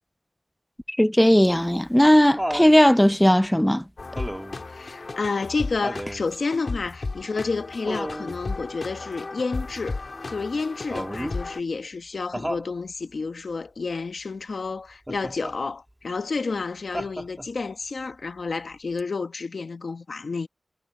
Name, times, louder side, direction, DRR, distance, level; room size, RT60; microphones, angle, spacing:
voice 1, 0.9-3.8, equal, 10° left, 0.4 m, -17 dB
Laughter, 1.4-2.8 4.2-4.6 5.8-6.3 7.9-8.4 10.9-11.4 12.3-12.7 15.1-15.6 16.9-17.6 19.0-19.1, equal, 10° right, 1.6 m, -32 dB
sound 1, 4.0-11.6, left 3 dB, 65° left, 3.0 m, -35 dB
voice 2, 4.7-10.0 10.3-20.5, left 4 dB, 90° left, 1.1 m, -30 dB
wide cardioid pair, 85°, 0 cm